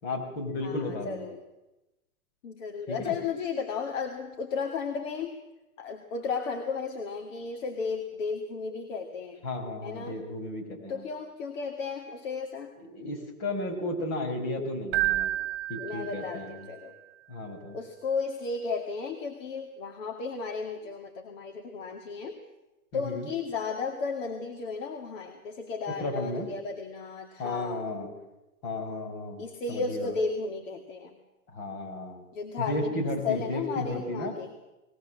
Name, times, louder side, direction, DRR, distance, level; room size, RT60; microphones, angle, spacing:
voice 1, 0.0-1.3 2.9-3.1 9.4-11.1 12.8-15.3 15.7-16.7 17.3-17.8 22.9-23.3 26.0-26.5 27.4-28.1 28.6-30.1 31.5-32.2 32.6-34.3, left 2 dB, 35° left, 3 dB, 5.5 m, -34 dB
voice 2, 0.6-1.4 2.4-5.3 5.8-9.5 9.8-10.2 10.9-12.7 15.8-16.9 17.7-22.4 22.9-27.9 29.4-31.2 32.3-34.5, left 5 dB, 55° left, 4 dB, 2.4 m, -34 dB
Keyboard (musical), 14.9-16.7, right 15 dB, 25° right, 3.0 m, -30 dB
20.5 x 18.0 x 7.6 m, 1.0 s
hypercardioid pair, 130°, 45 cm